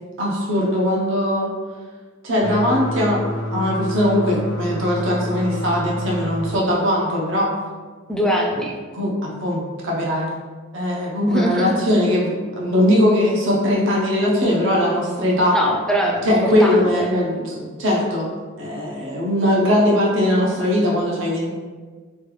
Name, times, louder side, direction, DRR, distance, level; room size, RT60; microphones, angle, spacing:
voice 1, 0.2-1.5 2.2-3.2 3.5-7.5 8.9-10.3 10.7-15.6 16.3-18.3 18.6-21.5, left 1 dB, 70° right, -3 dB, 0.6 m, -20 dB
sound 1, 2.4-6.6, equal, 85° left, 0.4 m, -28 dB
voice 2, 8.1-8.8 11.3-11.8 15.5-17.1, right 1 dB, 5° left, -1 dB, 0.4 m, -23 dB
3.1 x 2.2 x 3.2 m, 1.4 s
head